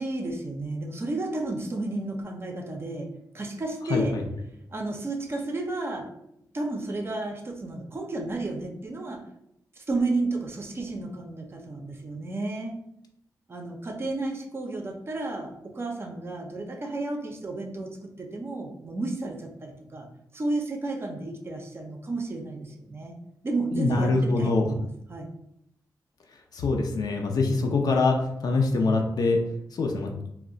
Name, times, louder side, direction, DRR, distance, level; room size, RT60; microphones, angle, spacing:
voice 1, 0.0-3.1 3.3-4.2 4.7-6.1 6.5-9.2 9.8-12.8 13.5-20.1 20.3-23.1 23.4-25.3, right 2 dB, 35° right, 2 dB, 0.5 m, -32 dB
voice 2, 3.9-4.2 23.7-24.7 26.5-29.4 29.7-30.1, left 3 dB, 65° left, 2 dB, 0.5 m, -24 dB
2.3 x 2.1 x 3.7 m, 0.76 s
wide cardioid pair, 100°, 7 cm